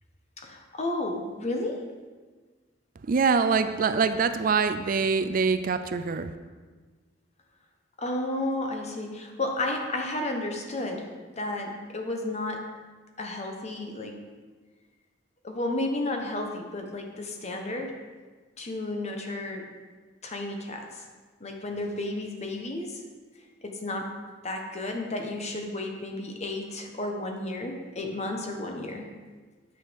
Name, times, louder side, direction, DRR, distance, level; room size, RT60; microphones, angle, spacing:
voice 1, 0.4-1.8 8.0-12.8 13.2-14.2 15.4-18.0 18.6-19.7 20.2-21.0 21.4-23.0 23.6-24.1 24.4-29.1, left 2 dB, 35° left, 3 dB, 1.1 m, -32 dB
voice 2, 3.1-6.3, right 5 dB, 50° right, 10 dB, 0.4 m, -24 dB
8.9 x 6.3 x 5.2 m, 1.4 s
head